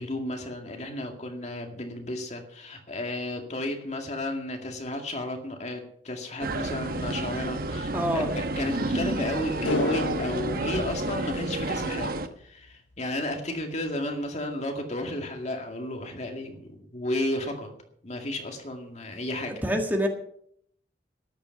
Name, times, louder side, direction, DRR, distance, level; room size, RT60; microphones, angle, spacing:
voice 1, 0.0-17.7 18.0-19.5, left 1 dB, 40° left, 3 dB, 2.2 m, -33 dB
sound 1, 6.4-12.3, right 2 dB, 55° right, 1.0 m, -30 dB
voice 2, 7.9-8.3 19.6-20.1, equal, 10° right, 3 dB, 1.7 m, -25 dB
sound 2, 9.6-12.1 12.4-12.5, left 3 dB, 90° left, 0.7 m, -32 dB
14.0 x 10.5 x 5.8 m, 0.67 s
head